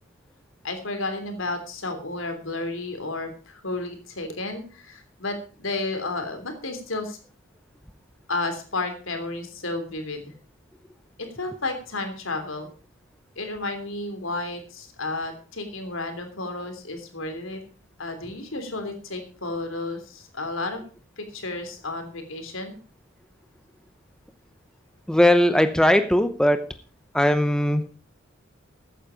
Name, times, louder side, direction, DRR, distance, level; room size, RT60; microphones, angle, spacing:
voice 1, 0.6-7.2 8.3-10.2 11.2-12.7 13.4-17.6 18.0-20.8 21.2-22.8, left 2 dB, 80° left, 6 dB, 3.3 m, -32 dB
voice 2, 25.1-26.7 27.1-27.9, left 1 dB, 5° left, 9 dB, 0.8 m, -19 dB
14.5 x 9.2 x 5.1 m, 0.38 s
head